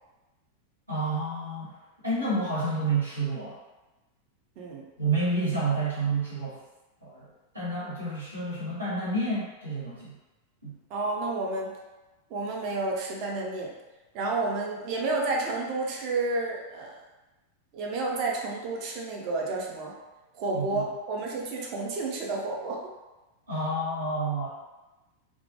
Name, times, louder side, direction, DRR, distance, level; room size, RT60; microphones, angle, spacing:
voice 1, 0.9-1.8 2.0-3.6 5.0-6.6 7.0-7.3 7.5-10.2 10.6-10.8 20.5-20.8 23.5-24.5, right 2 dB, 80° right, -8 dB, 1.0 m, -29 dB
voice 2, 10.9-11.7 12.3-13.7 14.1-16.9 17.7-19.9 20.3-22.8, right 3 dB, 45° right, -1 dB, 0.4 m, -30 dB
2.1 x 2.1 x 2.7 m, 1.1 s
figure-of-eight pair, 90°, 0 cm